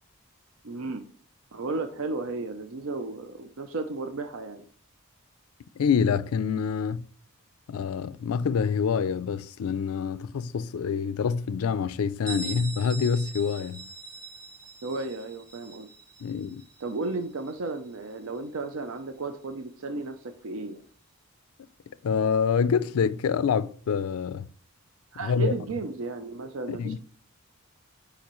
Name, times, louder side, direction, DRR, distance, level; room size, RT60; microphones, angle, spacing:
voice 1, 0.6-1.0 1.5-4.6 14.8-15.9 16.8-20.8 25.1-27.0, right 3 dB, 70° right, 0.6 m, -34 dB
voice 2, 5.8-7.1 7.7-13.8 16.2-16.6 22.0-24.4 25.2-25.5 26.7-27.0, left 6 dB, 85° left, 0.4 m, -26 dB
Bell, 12.3-17.8, right 4 dB, 15° right, 1.8 m, -42 dB
7.0 x 5.0 x 3.0 m
head